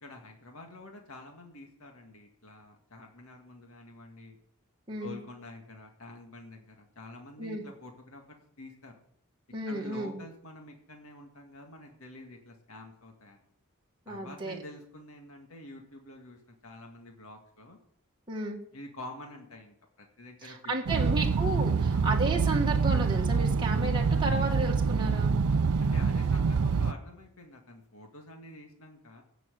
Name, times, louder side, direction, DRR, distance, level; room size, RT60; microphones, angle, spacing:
voice 1, 0.0-4.4 4.9-9.0 9.7-13.4 14.1-17.8 18.7-20.6 20.9-21.2 21.9-22.1 25.8-29.2, left 1 dB, 70° left, 2 dB, 1.9 m, -48 dB
voice 2, 4.9-5.2 7.4-7.6 9.5-10.2 14.1-14.6 18.3-18.6 20.4-25.4, right 2 dB, 20° right, -1 dB, 1.8 m, -33 dB
sound 1, 20.9-26.9, right 5 dB, 75° right, 0.5 m, -26 dB
16.5 x 6.2 x 7.8 m, 0.70 s
head